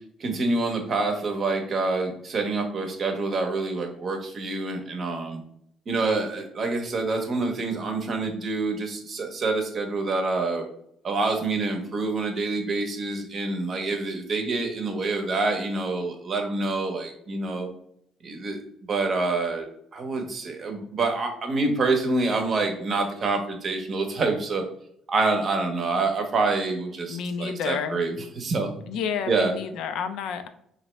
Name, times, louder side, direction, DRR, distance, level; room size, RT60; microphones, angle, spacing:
voice 1, 0.2-5.4 5.9-10.6 11.0-17.7 18.2-18.6 18.9-19.7 19.9-24.6 25.1-28.8 29.3-29.6, right 3 dB, 45° right, 4 dB, 0.7 m, -27 dB
voice 2, 27.1-28.0 28.9-30.5, left 7 dB, 75° left, 9 dB, 0.3 m, -30 dB
3.0 x 2.6 x 3.1 m, 0.72 s
cardioid pair, 100°, 0 cm